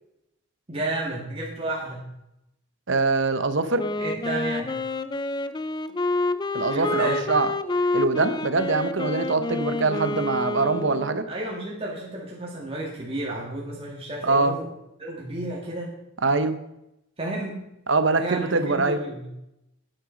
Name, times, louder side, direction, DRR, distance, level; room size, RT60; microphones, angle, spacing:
voice 1, 0.7-2.0 4.0-4.7 6.7-7.2 11.3-14.7 15.0-15.9 17.2-17.6 18.1-19.3, right 2 dB, 30° right, -4 dB, 1.9 m, -32 dB
voice 2, 2.9-3.8 6.5-7.5 7.9-11.3 14.2-14.6 16.2-16.6 17.9-19.0, right 3 dB, 70° right, 10 dB, 0.9 m, -23 dB
Wind instrument woodwind instrument, 3.8-11.4, left 2 dB, 20° left, 0.5 m, -28 dB
11.5 x 9.1 x 5.2 m, 0.85 s
head